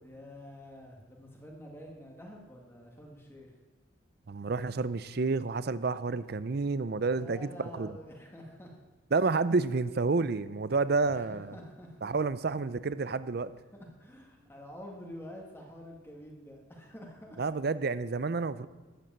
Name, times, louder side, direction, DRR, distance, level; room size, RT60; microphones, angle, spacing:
voice 1, 0.0-3.5 7.1-8.8 10.7-11.3 11.5-12.1 13.7-17.6, equal, 10° left, 0 dB, 1.6 m, -48 dB
voice 2, 4.3-7.9 9.1-11.5 12.0-13.5 17.4-18.7, right 4 dB, 50° right, 16 dB, 0.5 m, -29 dB
13.0 x 8.2 x 7.5 m, 1.2 s
head